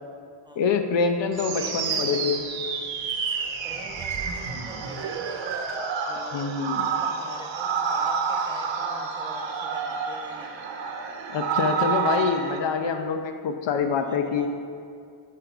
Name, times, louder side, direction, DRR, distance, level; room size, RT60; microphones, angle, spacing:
voice 1, 0.6-2.4 6.3-6.9 11.3-14.5, left 5 dB, 60° left, 6 dB, 0.7 m, -25 dB
sound 1, 1.3-12.6, right 5 dB, 65° right, 1.0 m, -29 dB
voice 2, 1.5-2.2 3.6-5.6 6.1-6.4 6.8-10.5 14.0-14.5, right 1 dB, 10° right, -1 dB, 0.9 m, -43 dB
8.4 x 5.3 x 5.0 m, 2.3 s
cardioid pair, 120°, 50 cm